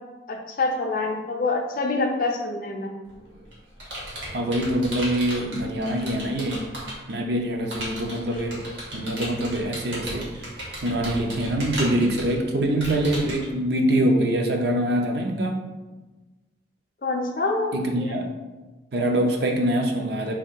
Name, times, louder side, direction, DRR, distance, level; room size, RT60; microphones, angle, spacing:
voice 1, 0.3-2.9 17.0-18.3, left 3 dB, 45° left, 2 dB, 0.5 m, -26 dB
Computer keyboard, 3.1-7.1 7.7-13.5, right 1 dB, 75° right, 1.4 m, -35 dB
voice 2, 4.3-6.6 7.1-8.6 8.9-10.5 10.8-15.6 17.7-18.3 18.9-20.3, right 1 dB, 55° right, 2 dB, 0.5 m, -24 dB
3.6 x 2.6 x 4.5 m, 1.2 s
head